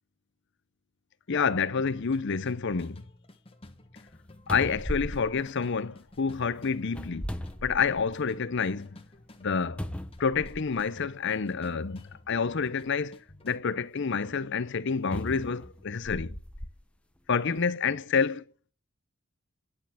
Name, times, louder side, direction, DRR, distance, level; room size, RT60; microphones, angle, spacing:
voice 1, 1.3-3.0 4.5-7.3 7.6-8.9 9.4-9.9 10.2-12.0 12.3-13.2 13.4-16.4 17.3-18.4, left 5 dB, 55° left, 0.6 m, -28 dB
sound 1, 1.8-13.6, left 1 dB, 25° left, 1.3 m, -53 dB
sound 2, 4.1-4.2 4.5-6.2 6.9-8.3 8.7-8.8 9.8-10.9 11.8-11.9 15.1-16.8 17.5-17.6, equal, 5° left, 0.7 m, -38 dB
10.5 x 6.4 x 7.5 m
head